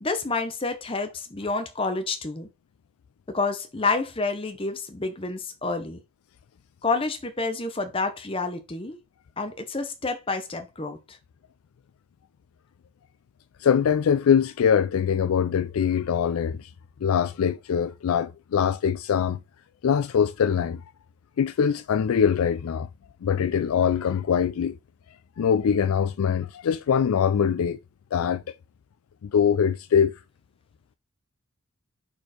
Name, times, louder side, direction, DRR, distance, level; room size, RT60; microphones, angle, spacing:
voice 1, 0.0-2.5 3.3-6.0 6.8-9.0 9.4-11.2, left 3 dB, 25° left, 0.8 m, -29 dB
voice 2, 13.6-16.7 17.0-19.4 19.8-20.8 21.4-22.9 23.2-24.8 25.4-27.8 28.1-28.4 29.2-30.1, left 7 dB, 80° left, 0.3 m, -23 dB
4.4 x 4.4 x 4.9 m
head